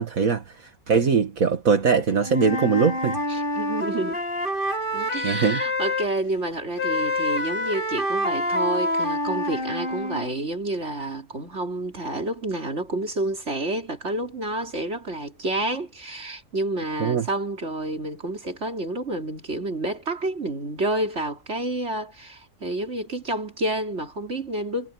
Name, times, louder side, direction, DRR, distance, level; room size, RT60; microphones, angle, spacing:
voice 1, 0.0-3.2 5.2-5.6 17.0-17.3, right 5 dB, 70° right, 2.2 m, -22 dB
Wind instrument woodwind instrument, 2.2-6.1 6.8-10.3, left 1 dB, 35° left, 6.5 m, -27 dB
voice 2, 3.3-4.2 4.9-24.9, right 2 dB, 50° right, 3.7 m, -29 dB
omnidirectional pair, 1.5 m